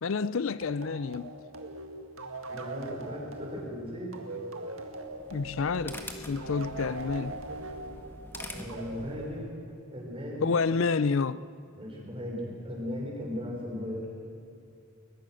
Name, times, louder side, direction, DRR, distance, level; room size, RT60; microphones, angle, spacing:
voice 1, 0.0-1.3 5.3-6.0 6.3-7.3 10.4-11.4, left 5 dB, 70° left, 0.5 m, -28 dB
sound 1, 0.6-9.8, right 2 dB, 80° right, 2.0 m, -41 dB
voice 2, 2.5-4.1 8.5-9.5 9.9-10.6 11.8-14.1, left 1 dB, 25° right, 6.0 m, -37 dB
sound 2, 5.1-9.5, left 1 dB, 10° left, 1.7 m, -45 dB
22.0 x 21.0 x 6.4 m
head